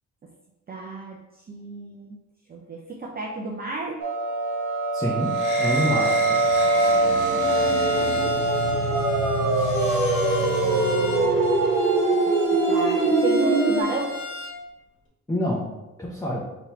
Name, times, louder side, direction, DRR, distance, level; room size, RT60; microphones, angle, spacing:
voice 1, 0.7-1.2 1.5-2.2 2.5-4.1 6.9-7.4 8.0-8.1 10.4-11.5 12.7-14.2, right 3 dB, 30° right, -2 dB, 0.7 m, -34 dB
sound 1, 4.0-13.8, right 2 dB, 80° right, 1.1 m, -22 dB
voice 2, 4.9-5.3 5.6-6.4 15.3-15.7 16.0-16.4, left 1 dB, 10° left, -4 dB, 0.9 m, -26 dB
sound 2, 5.3-11.9, left 1 dB, 80° left, 1.2 m, -31 dB
Bowed string instrument, 7.4-14.6, left 2 dB, 40° left, 1.5 m, -37 dB
3.8 x 3.0 x 4.5 m, 1.0 s
cardioid pair, 90°, 30 cm